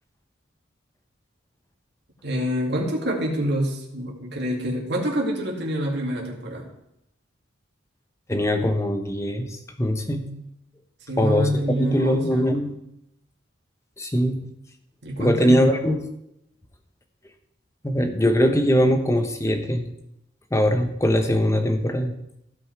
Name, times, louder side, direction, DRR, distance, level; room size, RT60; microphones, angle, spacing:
voice 1, 2.2-6.7 11.1-12.5 15.0-16.0, equal, 60° right, -1 dB, 2.3 m, -26 dB
voice 2, 8.3-10.3 11.2-11.6 11.9-12.8 14.0-14.4 15.2-16.0 17.8-19.9 20.5-22.1, equal, 15° left, 6 dB, 0.9 m, -21 dB
15.5 x 5.3 x 4.7 m, 0.81 s
head